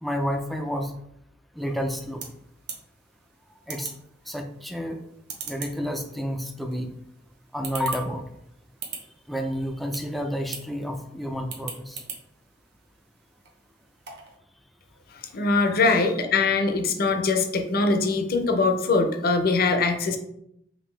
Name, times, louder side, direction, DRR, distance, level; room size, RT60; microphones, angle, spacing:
voice 1, 0.0-0.9 1.6-2.2 3.7-3.9 4.3-5.0 5.5-6.9 7.5-8.2 9.3-12.0, equal, ahead, 4 dB, 0.4 m, -30 dB
sound 1, 1.6-14.4, right 6 dB, 65° right, 0.8 m, -43 dB
voice 2, 15.3-20.2, left 3 dB, 55° left, 5 dB, 0.6 m, -22 dB
5.2 x 2.6 x 3.2 m, 0.77 s
head